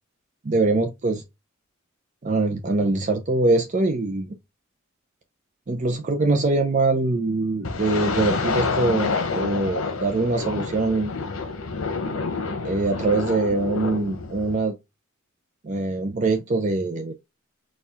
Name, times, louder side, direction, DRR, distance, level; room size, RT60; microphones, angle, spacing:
voice 1, 0.4-1.2 2.2-4.3 5.7-11.1 12.6-14.7 15.6-17.1, right 2 dB, 35° right, 0.4 m, -23 dB
sound 1, 7.6-14.6, left 4 dB, 90° left, 0.9 m, -28 dB
4.3 x 2.3 x 3.5 m
head